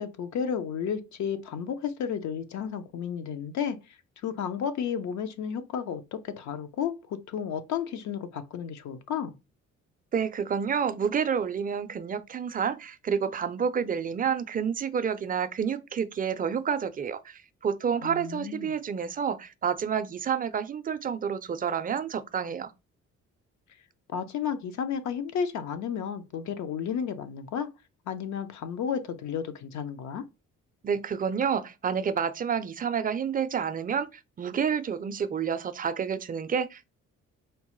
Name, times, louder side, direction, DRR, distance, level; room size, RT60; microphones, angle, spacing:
voice 1, 0.0-3.8 4.2-9.3 18.0-18.7 24.1-27.7 28.1-30.2, left 7 dB, 70° left, 0.6 m, -32 dB
voice 2, 10.1-22.7 30.8-36.9, right 7 dB, 30° right, 0.4 m, -29 dB
4.5 x 2.1 x 3.0 m
cardioid pair, 90°, 30 cm